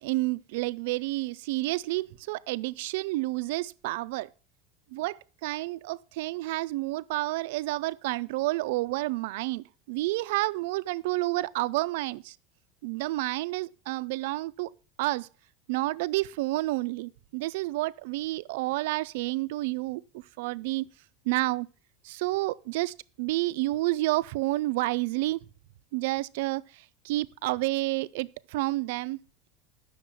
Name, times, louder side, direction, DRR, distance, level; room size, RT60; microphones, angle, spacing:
voice 1, 0.0-4.3 4.9-12.4 12.8-14.7 15.0-15.3 15.7-20.9 21.3-21.7 22.0-25.4 25.9-29.2, right 19 dB, 75° right, 0.4 m, -30 dB
9.1 x 6.4 x 6.1 m
supercardioid pair, 160°, 0 cm